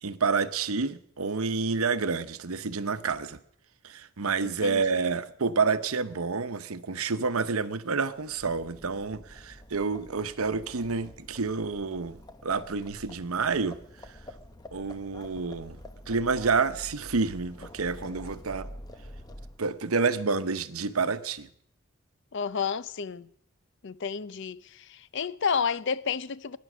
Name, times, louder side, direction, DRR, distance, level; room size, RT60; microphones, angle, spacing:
voice 1, 0.0-3.4 3.8-13.8 14.1-14.2 14.7-15.8 16.1-18.7 19.6-21.5, right 4 dB, 90° right, 0.9 m, -29 dB
Livestock farm animals working animals, 8.2-19.8, left 1 dB, 20° left, 0.8 m, -47 dB
voice 2, 22.3-23.3 23.8-24.6 24.9-26.6, left 6 dB, 55° left, 0.6 m, -30 dB
21.5 x 10.5 x 6.2 m
head